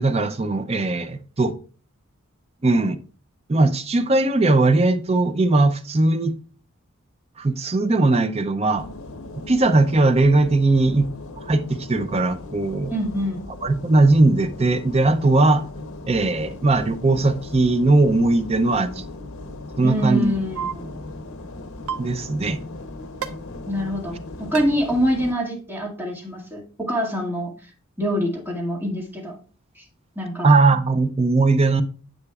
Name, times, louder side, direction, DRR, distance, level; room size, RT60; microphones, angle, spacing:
voice 1, 0.0-1.5 2.6-3.0 3.5-6.3 7.4-8.9 9.3-11.1 11.4-12.9 13.6-15.7 16.1-19.0 19.8-20.4 22.0-22.6 30.4-31.8, right 2 dB, 30° right, 0.5 m, -19 dB
sound 1, 8.8-25.3, left 2 dB, 75° left, 1.0 m, -38 dB
voice 2, 12.9-13.4 19.8-20.9 23.7-27.5 28.0-29.3 29.8-29.9 30.2-30.5, equal, 10° right, 2.0 m, -25 dB
sound 2, 20.5-20.7 21.9-22.0 23.2-23.3 24.5-24.6, right 7 dB, 80° right, 0.8 m, -27 dB
9.6 x 7.9 x 2.4 m
head